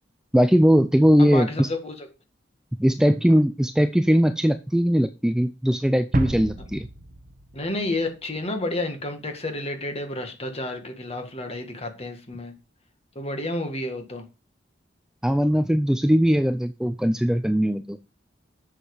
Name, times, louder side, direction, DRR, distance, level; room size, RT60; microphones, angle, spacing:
voice 1, 0.3-1.7 2.8-6.9 15.2-18.0, equal, 5° right, 10 dB, 0.4 m, -20 dB
voice 2, 1.2-2.1 7.5-12.5 13.2-14.2, left 2 dB, 35° left, 5 dB, 1.8 m, -30 dB
sound 1, 6.1-8.6, right 2 dB, 45° right, 0.9 m, -32 dB
7.9 x 6.5 x 4.9 m, 0.31 s
head